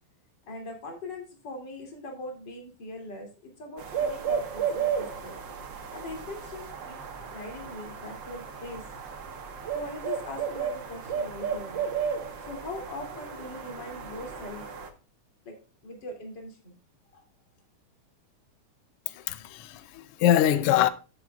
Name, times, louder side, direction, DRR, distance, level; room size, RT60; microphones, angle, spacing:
voice 1, 0.5-5.4 5.9-8.8 9.7-11.8 12.5-14.7 15.4-15.5 15.8-16.8 17.1-17.2, left 2 dB, 35° left, 3.2 m, -41 dB
sound 1, 3.8-14.9, right 7 dB, 50° right, 1.6 m, -34 dB
voice 2, 19.1-20.9, left 11 dB, 80° left, 1.3 m, -24 dB
14.0 x 7.8 x 2.4 m
omnidirectional pair, 3.4 m